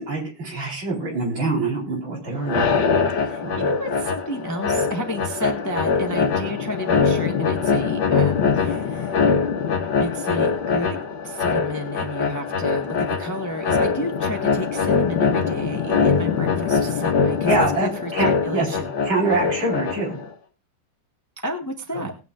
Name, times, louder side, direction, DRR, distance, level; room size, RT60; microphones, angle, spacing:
voice 1, 0.0-2.8 3.4-3.7 17.5-18.7 19.1-20.2 21.9-22.1, right 3 dB, 65° right, -2 dB, 5.3 m, -25 dB
sound 1, 2.4-20.3, left 5 dB, 65° left, 1.9 m, -23 dB
voice 2, 3.1-9.2 10.0-11.0 11.2-18.9 21.4-22.1, equal, 10° left, 3 dB, 1.1 m, -31 dB
19.5 x 9.2 x 2.5 m, 0.32 s
omnidirectional pair, 2.3 m